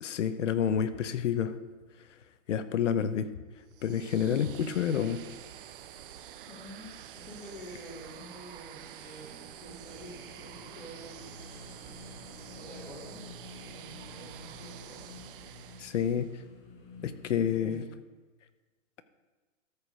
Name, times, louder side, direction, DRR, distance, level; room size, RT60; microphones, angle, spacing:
voice 1, 0.0-1.6 2.5-3.3 3.8-5.2 15.8-16.3 17.0-17.8, left 8 dB, 70° left, 12 dB, 1.0 m, -29 dB
sound 1, 3.7-16.4, right 10 dB, 45° right, 0.7 m, -48 dB
voice 2, 6.4-11.3 12.5-13.2 13.6-15.2 17.4-17.8, right 1 dB, 20° left, -8 dB, 3.1 m, -48 dB
sound 2, 9.9-17.3, left 3 dB, 45° left, 1.8 m, -50 dB
13.0 x 4.9 x 6.9 m, 1.3 s
hypercardioid pair, 145°, 39 cm